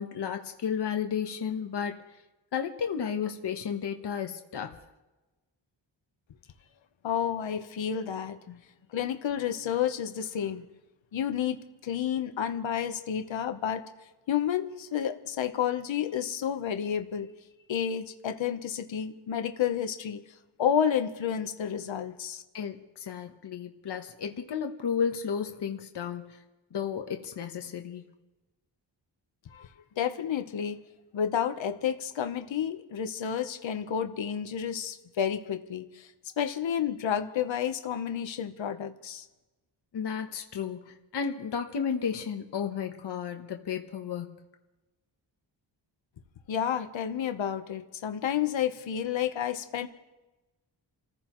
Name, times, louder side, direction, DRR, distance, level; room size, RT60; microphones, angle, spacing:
voice 1, 0.0-2.0 2.5-4.7 8.5-8.6 22.5-26.4 26.7-28.0 39.9-44.3, left 7 dB, 60° left, 4 dB, 1.1 m, -33 dB
voice 2, 7.0-8.4 8.9-10.6 11.1-13.9 14.3-17.3 17.7-20.2 20.6-22.4 29.5-29.7 30.0-30.8 31.1-39.3 46.5-49.9, left 9 dB, 75° left, 7 dB, 1.0 m, -30 dB
30.0 x 15.0 x 3.1 m, 1.1 s
wide cardioid pair, 170°, 46 cm